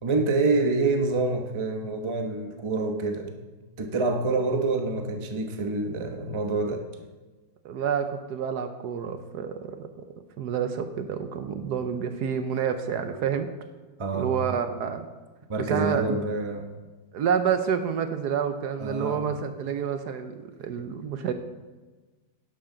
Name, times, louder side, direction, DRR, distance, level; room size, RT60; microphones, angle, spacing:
voice 1, 0.0-3.4 3.8-6.8 11.5-11.6 13.2-13.3 14.0-14.6 15.5-16.7 18.8-19.3, right 3 dB, 25° right, 4 dB, 0.7 m, -27 dB
voice 2, 7.6-10.1 10.4-13.5 14.1-15.1 15.7-16.2 17.1-20.3 20.6-21.3, right 7 dB, 70° right, 8 dB, 1.2 m, -28 dB
11.5 x 11.5 x 3.9 m, 1.2 s
omnidirectional pair, 2.0 m